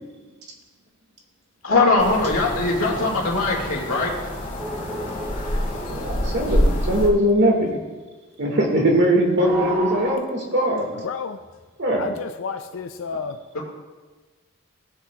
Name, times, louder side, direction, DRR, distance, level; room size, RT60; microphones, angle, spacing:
voice 1, 1.6-4.1, left 3 dB, 85° left, -1 dB, 2.2 m, -20 dB
sound 1, 2.0-7.1, left 1 dB, 40° left, 2.1 m, -26 dB
sound 2, 4.6-7.1 9.4-10.1, right 1 dB, 10° right, 2.0 m, -30 dB
voice 2, 5.9-7.8 8.4-10.9 11.8-12.0, right 1 dB, 55° right, 0 dB, 1.9 m, -21 dB
voice 3, 11.0-11.4 12.0-13.4, left 5 dB, 70° left, 8 dB, 0.4 m, -31 dB
17.0 x 8.1 x 2.4 m, 1.3 s
head